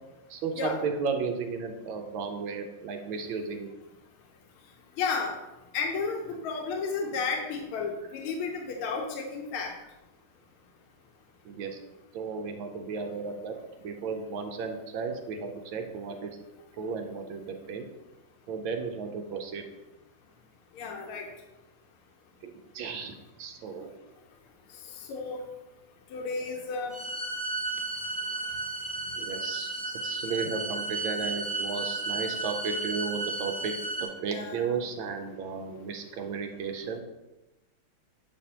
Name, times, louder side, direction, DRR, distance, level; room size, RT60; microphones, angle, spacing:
voice 1, 0.3-3.7 11.4-11.8 12.1-16.3 16.7-17.8 18.5-19.7 22.4-23.9 29.2-37.0, right 5 dB, 75° right, 5 dB, 1.4 m, -34 dB
voice 2, 5.0-5.3 5.7-9.7 20.8-21.3 25.1-25.4 26.1-27.0 34.3-34.7, left 4 dB, 85° left, 2 dB, 1.7 m, -32 dB
sound 1, 26.9-34.0, right 3 dB, 40° left, 0.5 m, -33 dB
7.7 x 5.3 x 2.8 m, 1.0 s
omnidirectional pair, 2.4 m